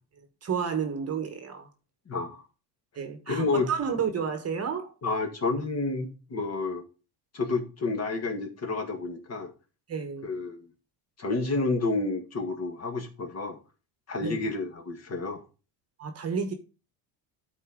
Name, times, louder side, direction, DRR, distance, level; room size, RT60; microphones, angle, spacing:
voice 1, 0.4-1.7 2.9-4.9 9.9-10.3 14.2-14.4 16.0-16.5, right 6 dB, 30° right, 1.2 m, -31 dB
voice 2, 2.1-2.4 3.3-3.7 5.0-6.8 7.3-9.5 10.2-10.7 11.2-13.6 14.1-15.4, left 3 dB, 35° left, 1.8 m, -30 dB
13.0 x 4.3 x 3.7 m
cardioid pair, 125°, 47 cm